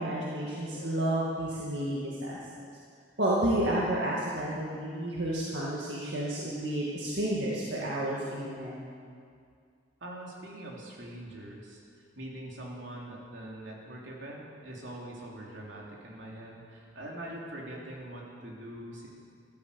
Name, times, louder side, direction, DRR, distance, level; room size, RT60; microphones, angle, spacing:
voice 1, 0.0-2.4 3.2-8.8, right 1 dB, 65° right, -6 dB, 2.1 m, -31 dB
voice 2, 10.0-19.1, right 1 dB, 85° right, -3 dB, 3.4 m, -43 dB
14.0 x 13.0 x 6.9 m, 2.3 s
head